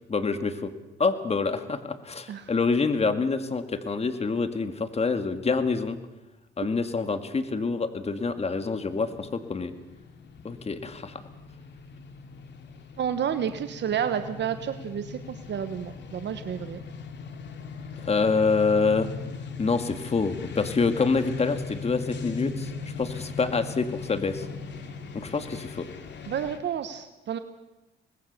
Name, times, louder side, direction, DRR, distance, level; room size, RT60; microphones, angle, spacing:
voice 1, 0.1-0.7 1.0-6.0 6.6-9.7 10.4-11.2 18.0-19.1 19.6-22.7 23.0-24.5 25.1-25.9, left 4 dB, 30° left, 9 dB, 2.0 m, -26 dB
sound 1, 8.5-26.6, left 5 dB, 65° left, 2.8 m, -39 dB
voice 2, 13.0-16.8 26.3-27.4, right 8 dB, 60° right, 9 dB, 1.3 m, -30 dB
23.5 x 20.0 x 6.8 m, 1.0 s
cardioid pair, 90°, 20 cm